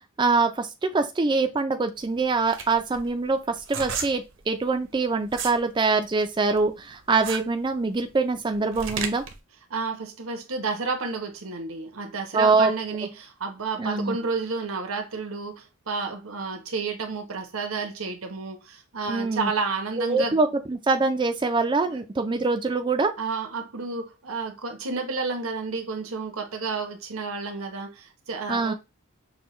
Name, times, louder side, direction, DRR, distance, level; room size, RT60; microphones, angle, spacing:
voice 1, 0.2-9.2 12.3-12.7 13.8-14.2 19.1-19.5 20.0-23.1 28.5-28.7, right 3 dB, 20° right, 0.4 m, -24 dB
sound 1, 2.0-5.6 6.0-9.4, right 6 dB, 60° right, 0.7 m, -34 dB
voice 2, 9.7-20.4 21.9-22.0 23.2-28.7, right 4 dB, 85° right, 1.0 m, -31 dB
6.2 x 2.2 x 3.1 m
head